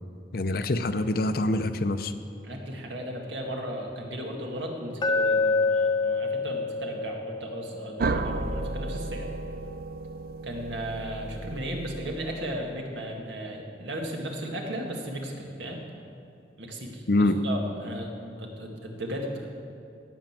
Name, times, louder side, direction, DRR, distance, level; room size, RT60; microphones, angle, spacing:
voice 1, 0.3-2.1 17.1-17.4, left 2 dB, 55° left, 10 dB, 0.7 m, -25 dB
voice 2, 2.4-9.3 10.4-15.8 16.6-17.0 17.4-18.1 18.4-19.3, equal, 85° right, 1 dB, 2.0 m, -35 dB
Glass, 5.0-9.1, left 3 dB, 25° left, 0.8 m, -28 dB
sound 1, 8.0-12.7, right 3 dB, 55° right, 0.4 m, -34 dB
17.5 x 6.4 x 7.4 m, 2.6 s
head